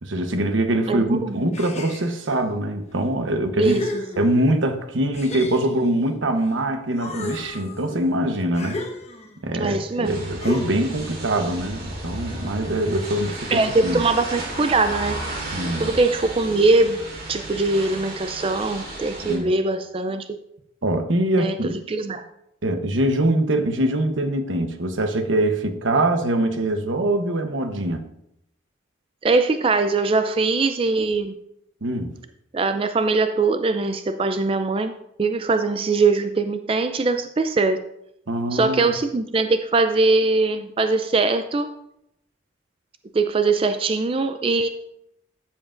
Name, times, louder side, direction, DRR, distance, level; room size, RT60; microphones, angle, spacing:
voice 1, 0.0-3.8 4.2-8.8 9.4-14.0 15.5-16.0 19.2-19.5 20.8-21.8 22.6-28.1 31.8-32.1 38.3-38.9, right 1 dB, 90° right, 1.0 m, -23 dB
voice 2, 0.9-1.5 3.6-3.8 9.5-10.2 13.5-15.2 15.8-17.0 17.3-20.4 21.4-22.2 29.2-31.3 32.5-37.8 38.5-41.7 43.1-44.7, right 3 dB, 30° right, 0.4 m, -21 dB
sound 1, 1.5-2.4 3.0-3.1 3.6-4.6 5.1-6.6 6.9-9.4 10.4-11.0, left 2 dB, 35° left, 1.2 m, -34 dB
sound 2, 10.0-19.4, right 1 dB, 55° right, 2.2 m, -33 dB
12.5 x 7.4 x 2.5 m
head